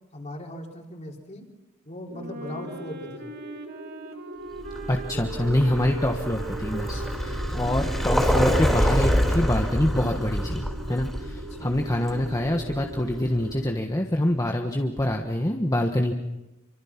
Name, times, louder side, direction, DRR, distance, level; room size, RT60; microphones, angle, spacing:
voice 1, 0.1-1.5 1.9-3.3 7.5-7.8 11.5-11.8, left 1 dB, 35° left, 1 dB, 3.8 m, -39 dB
Wind instrument woodwind instrument, 2.1-10.5, right 1 dB, 50° right, 2.4 m, -41 dB
sound 1, 2.1-13.8, right 1 dB, 90° right, 5.4 m, -42 dB
Vehicle, 4.6-13.4, equal, ahead, 4.1 m, -27 dB
voice 2, 4.9-16.1, left 1 dB, 15° left, 3 dB, 1.3 m, -25 dB
28.0 x 25.0 x 6.0 m, 1.0 s
head